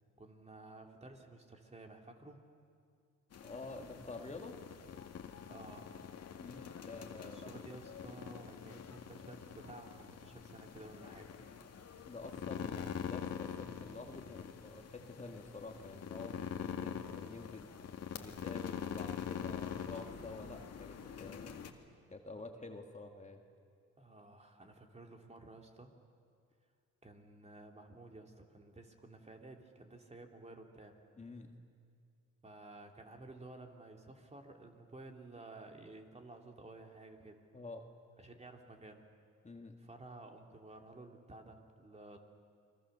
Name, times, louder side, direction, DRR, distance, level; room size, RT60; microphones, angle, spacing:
voice 1, 0.2-2.4 5.4-6.1 7.2-11.5 24.0-25.9 27.0-31.0 32.4-37.4 38.2-39.0 39.8-42.2, right 2 dB, 20° right, 3 dB, 2.9 m, -53 dB
sound 1, 3.3-21.7, left 8 dB, 55° left, 2.1 m, -45 dB
voice 2, 3.4-4.6 6.4-7.7 12.0-17.7 18.1-21.7 22.1-23.4 31.2-31.5 37.5-37.9 39.4-39.8, left 3 dB, 25° left, 4 dB, 1.9 m, -48 dB
29.5 x 22.5 x 6.8 m, 2.3 s
cardioid pair, 90°, 30 cm